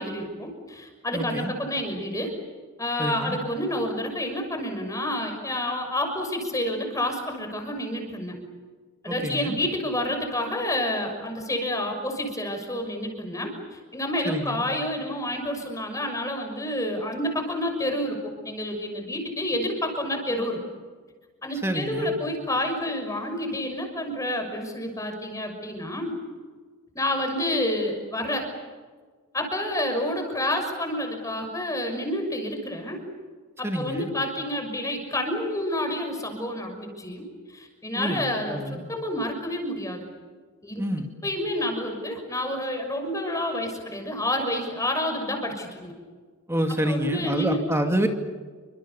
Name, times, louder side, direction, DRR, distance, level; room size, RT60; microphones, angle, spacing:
voice 1, 0.0-2.3 2.8-8.4 9.0-20.6 21.4-26.1 26.9-28.5 29.3-33.0 33.6-37.2 37.5-40.1 40.6-40.8 41.2-45.9 46.9-47.6, left 1 dB, 15° left, 4 dB, 6.3 m, -29 dB
voice 2, 1.1-1.5 3.0-3.4 9.1-9.6 14.2-14.6 21.6-22.1 33.6-34.1 37.9-38.8 40.8-41.1 46.5-48.1, right 1 dB, 10° right, 4 dB, 2.4 m, -27 dB
29.5 x 26.0 x 7.0 m, 1.5 s
head